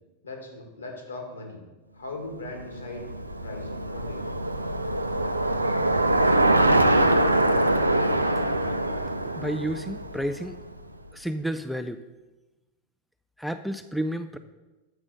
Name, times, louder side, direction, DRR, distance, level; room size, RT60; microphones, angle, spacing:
voice 1, 0.2-1.6 1.9-3.1 3.4-4.4, left 2 dB, 70° left, 3 dB, 1.9 m, -39 dB
Bicycle, 2.5-10.8, right 1 dB, 85° right, 0.5 m, -24 dB
voice 2, 9.2-10.6 11.1-12.0 13.4-14.4, equal, ahead, 8 dB, 0.4 m, -31 dB
7.8 x 6.0 x 6.4 m, 1.1 s
figure-of-eight pair, 90°, 0 cm